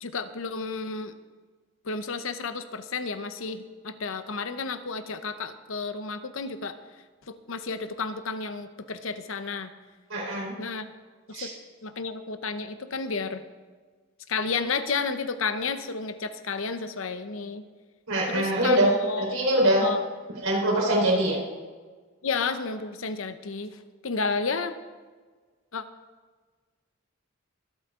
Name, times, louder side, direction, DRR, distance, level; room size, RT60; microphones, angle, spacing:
voice 1, 0.0-1.1 1.8-6.8 7.3-9.7 10.6-10.9 11.3-11.5 11.8-13.5 14.3-17.6 18.3-19.4 19.8-20.0 22.2-23.8 24.0-24.7 25.7-25.8, left 4 dB, 75° left, 10 dB, 0.8 m, -31 dB
voice 2, 10.1-10.5 11.3-11.5 18.1-18.9 19.2-19.9 20.4-21.4, right 1 dB, 80° right, -3 dB, 4.5 m, -23 dB
24.5 x 8.4 x 3.8 m, 1.4 s
head